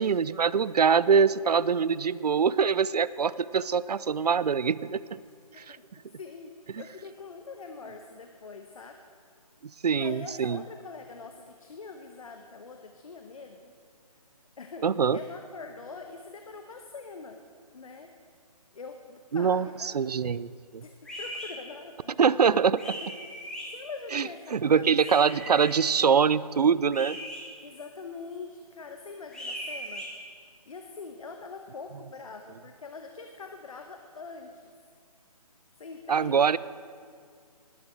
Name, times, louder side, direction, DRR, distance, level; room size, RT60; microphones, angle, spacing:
voice 1, 0.0-5.0 5.6-5.8 9.8-10.6 14.8-15.2 19.3-20.8 22.2-23.0 24.1-27.2 36.1-36.6, right 6 dB, 85° right, 19 dB, 0.5 m, -24 dB
voice 2, 5.3-5.8 6.2-9.0 9.9-13.7 14.6-17.4 17.7-18.1 18.7-20.0 20.8-22.2 23.0-23.1 23.4-24.9 25.2-25.6 27.6-30.1 30.7-34.7 35.8-36.5, left 4 dB, 60° left, 5 dB, 1.0 m, -44 dB
sound 1, 21.0-21.5 22.8-23.6 25.0-25.7 26.9-27.4 29.3-30.1, equal, 5° left, 1.5 m, -38 dB
18.0 x 10.5 x 4.4 m, 2.2 s
hypercardioid pair, 160°, 20 cm